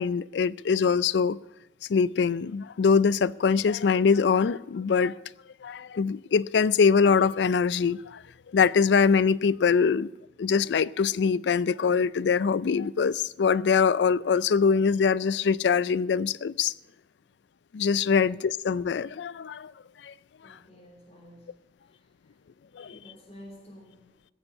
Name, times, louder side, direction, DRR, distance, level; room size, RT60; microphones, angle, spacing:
voice 1, 0.0-1.4 1.9-5.2 5.6-8.2 8.5-10.1 10.4-16.7 17.7-19.7 20.0-20.1 22.8-22.9, left 5 dB, 75° left, 0.4 m, -23 dB
voice 2, 20.4-21.5 21.8-22.4 22.9-24.2, equal, 35° left, 3.0 m, -51 dB
15.0 x 7.1 x 8.0 m
head